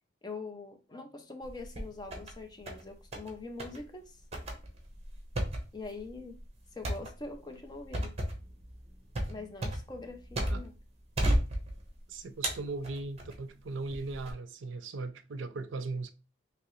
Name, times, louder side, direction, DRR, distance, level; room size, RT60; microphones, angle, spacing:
voice 1, 0.2-4.2 5.7-6.4 6.7-8.1 9.3-10.7, left 3 dB, 20° left, 0.6 m, -43 dB
sound 1, 1.4-2.3 2.7-3.3 3.6-3.8 4.3-10.8 11.2-12.0 12.4-13.4 13.9-14.3, right 1 dB, 35° right, 0.9 m, -33 dB
voice 2, 12.1-16.1, right 3 dB, 85° right, 0.5 m, -38 dB
3.7 x 2.9 x 3.0 m
head